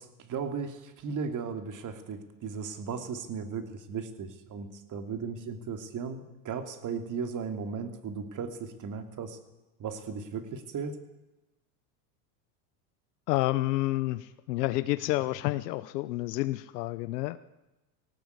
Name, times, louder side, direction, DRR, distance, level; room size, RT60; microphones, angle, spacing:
voice 1, 0.0-9.4 9.8-11.0, right 5 dB, 40° right, 8 dB, 2.9 m, -36 dB
voice 2, 13.3-17.4, left 18 dB, 80° left, 13 dB, 1.0 m, -29 dB
18.5 x 18.0 x 8.2 m, 1.0 s
supercardioid pair, 115°, 47 cm